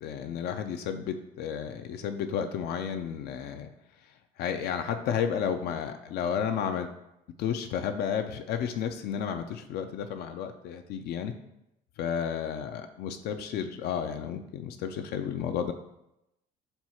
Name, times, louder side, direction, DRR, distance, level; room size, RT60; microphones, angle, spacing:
voice 1, 0.0-3.7 4.0-6.9 7.4-11.3 12.0-15.7, left 8 dB, 70° left, 7 dB, 0.4 m, -32 dB
4.4 x 2.3 x 4.2 m, 0.85 s
cardioid pair, 125°, 17 cm